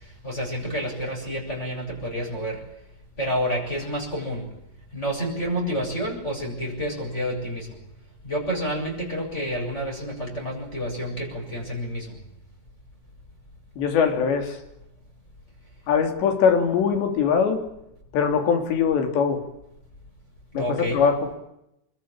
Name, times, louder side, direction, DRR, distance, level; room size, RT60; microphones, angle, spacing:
voice 1, 0.2-2.6 3.2-4.5 4.9-7.7 8.2-12.2 20.5-21.0, equal, 15° left, -3 dB, 8.0 m, -29 dB
voice 2, 13.8-14.6 15.9-17.6 18.1-19.4 20.6-21.3, left 6 dB, 80° left, 5 dB, 5.4 m, -22 dB
25.0 x 22.0 x 8.9 m, 0.81 s
omnidirectional pair, 4.9 m